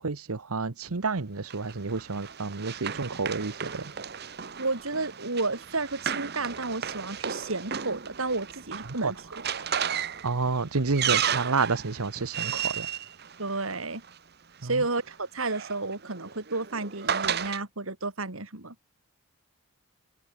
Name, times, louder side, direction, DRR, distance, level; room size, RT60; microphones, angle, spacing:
voice 1, 0.0-3.9 8.8-9.1 10.2-12.9 14.6-14.8, right 4 dB, 90° right, 1.0 m, -30 dB
Run, 1.5-14.1 15.1-17.6, right 8 dB, 50° right, 1.1 m, -34 dB
voice 2, 4.6-9.2 9.7-9.8 13.4-14.0 14.6-18.7, right 3 dB, 70° right, 2.9 m, -31 dB
open air
head